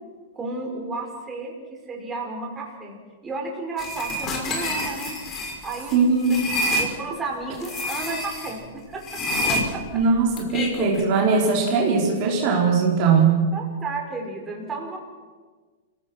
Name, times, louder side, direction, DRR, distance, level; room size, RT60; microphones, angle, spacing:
voice 1, 0.3-3.0 3.2-5.2 5.6-6.0 6.3-9.2 9.5-10.0 13.0-15.0, right 3 dB, 20° right, 0 dB, 5.8 m, -33 dB
sound 1, 3.8-6.9 7.6-8.5 9.0-11.0, left 1 dB, 30° left, 5.7 m, -27 dB
voice 2, 5.9-6.4 9.9-13.4, right 5 dB, 45° right, -2 dB, 4.8 m, -20 dB
28.5 x 17.5 x 6.2 m, 1.4 s
hypercardioid pair, 105°, 0 cm